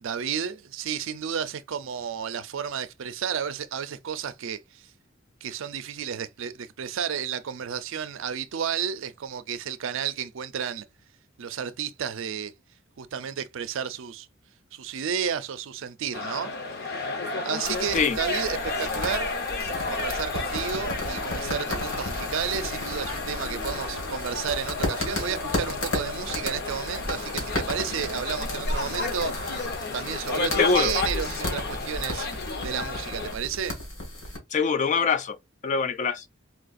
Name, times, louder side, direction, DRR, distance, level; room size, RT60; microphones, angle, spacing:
voice 1, 0.0-4.9 5.4-10.8 11.4-12.5 13.0-14.3 14.7-16.5 16.8-17.0 17.4-19.3 19.9-29.5 29.9-33.8, right 8 dB, 70° right, 0.4 m, -32 dB
sound 1, 16.1-33.3, left 3 dB, 55° left, 0.8 m, -32 dB
sound 2, 17.6-34.4, left 1 dB, 70° left, 1.8 m, -34 dB
voice 2, 30.6-30.9 34.5-35.4 35.6-36.2, left 5 dB, 35° left, 0.4 m, -23 dB
4.4 x 2.4 x 2.5 m
head